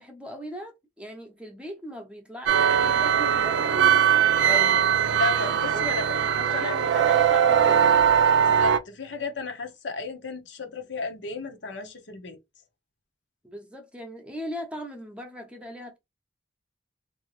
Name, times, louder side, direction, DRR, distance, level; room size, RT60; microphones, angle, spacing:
voice 1, 0.0-4.0 5.7-5.9 6.2-8.0 13.4-16.0, equal, 5° right, 0.8 m, -39 dB
sound 1, 2.5-8.8, right 8 dB, 65° right, 0.4 m, -21 dB
voice 2, 4.4-6.8 7.0-7.1 8.4-12.4, left 4 dB, 70° left, 0.9 m, -34 dB
3.7 x 2.7 x 3.0 m
head